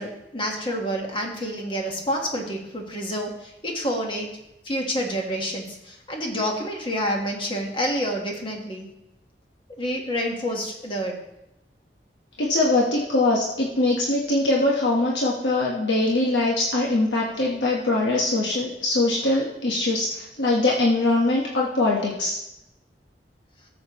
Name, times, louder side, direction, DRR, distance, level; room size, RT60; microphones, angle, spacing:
voice 1, 0.0-4.4 4.6-8.9 9.8-11.2, equal, 30° left, 1 dB, 1.5 m, -28 dB
voice 2, 12.4-22.4, left 2 dB, 90° left, -3 dB, 1.3 m, -22 dB
14.0 x 7.6 x 3.1 m, 0.89 s
head